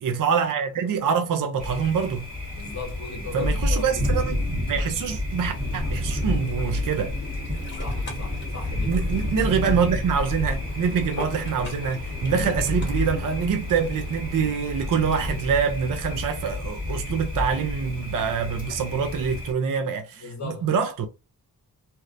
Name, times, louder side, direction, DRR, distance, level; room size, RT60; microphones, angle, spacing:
voice 1, 0.0-2.3 3.3-7.1 8.8-21.1, right 6 dB, 60° right, 0.5 m, -25 dB
Thunder, 1.6-19.5, left 1 dB, 25° right, 1.9 m, -30 dB
voice 2, 2.5-4.2 7.8-9.0 12.3-12.5 20.2-20.7, left 4 dB, 45° left, 1.2 m, -37 dB
Ocean, 5.4-15.5, equal, 30° left, 1.6 m, -38 dB
3.1 x 2.8 x 2.5 m
wide cardioid pair, 135°, 37 cm